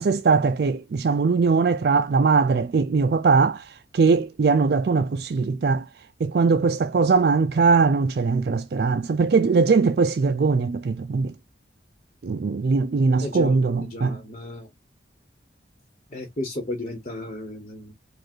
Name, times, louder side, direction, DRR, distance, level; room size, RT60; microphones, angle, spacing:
voice 1, 0.0-5.9 6.2-11.3 12.2-14.2, right 4 dB, 55° right, 0.4 m, -21 dB
voice 2, 13.2-13.6 13.9-14.7 16.1-17.9, left 1 dB, 35° left, 1.2 m, -33 dB
5.0 x 2.4 x 4.4 m
head